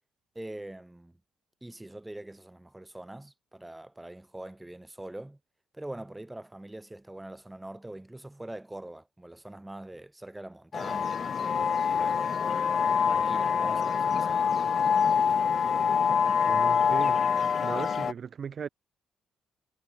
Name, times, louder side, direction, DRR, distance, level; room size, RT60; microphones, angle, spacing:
voice 1, 0.3-1.2 1.6-5.4 5.7-12.4 13.0-14.5, right 1 dB, 10° right, 3.2 m, -43 dB
sound 1, 10.7-18.1, left 7 dB, 50° left, 0.4 m, -25 dB
voice 2, 16.5-17.2 17.6-18.7, right 7 dB, 50° right, 1.1 m, -37 dB
cardioid pair, 90°, 0 cm